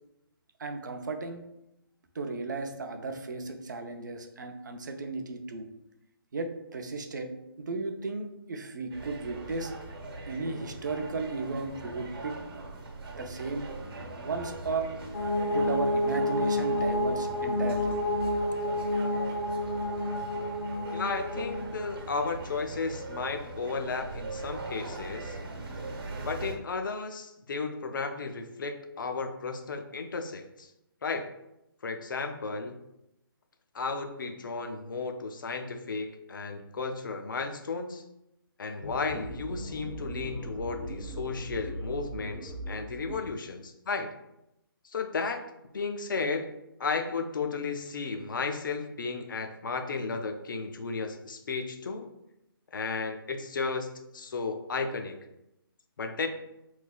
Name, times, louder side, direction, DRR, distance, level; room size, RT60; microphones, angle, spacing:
voice 1, 0.6-1.4 2.1-5.7 6.3-7.3 7.6-9.7 10.3-12.4 13.2-13.7 14.2-14.9 15.5-18.0, right 3 dB, 50° right, 5 dB, 0.4 m, -35 dB
sound 1, 8.9-26.6, right 2 dB, 70° right, 0.9 m, -41 dB
sound 2, 15.1-22.0, left 1 dB, 85° left, 1.1 m, -29 dB
voice 2, 20.9-25.4 26.2-30.7 31.0-31.3 31.8-32.7 33.7-38.0 38.6-44.1 44.8-45.4 45.7-46.5 46.8-52.1 52.7-53.9 54.1-55.2 56.0-56.3, left 4 dB, 55° left, 6 dB, 0.4 m, -34 dB
sound 3, 38.8-43.3, right 1 dB, ahead, 0.5 m, -39 dB
3.5 x 3.1 x 2.3 m, 0.86 s
hypercardioid pair, 170°, 13 cm